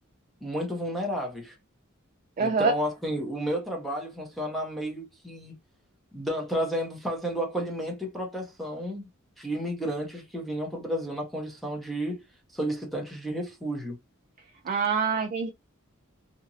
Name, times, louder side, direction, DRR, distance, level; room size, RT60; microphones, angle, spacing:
voice 1, 0.4-1.6 2.4-5.6 6.1-9.0 9.4-12.2 12.5-14.0, equal, ahead, 0.7 m, -32 dB
voice 2, 2.4-2.7 14.7-15.5, right 5 dB, 40° right, 0.3 m, -25 dB
2.8 x 2.5 x 2.6 m
head